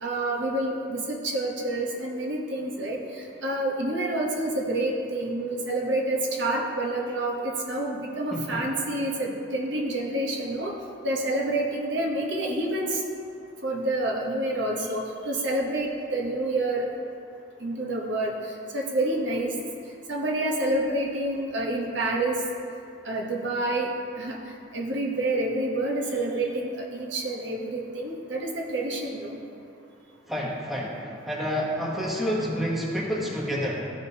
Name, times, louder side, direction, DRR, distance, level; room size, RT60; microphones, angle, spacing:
voice 1, 0.0-10.7 11.0-13.0 13.6-16.9 17.6-18.3 18.7-19.5 20.1-22.4 23.0-23.9 24.2-24.4 24.7-29.4, right 1 dB, 70° right, -1 dB, 1.0 m, -28 dB
voice 2, 8.3-8.7 30.3-33.8, equal, ahead, -5 dB, 1.0 m, -29 dB
14.0 x 5.1 x 2.8 m, 2.5 s
head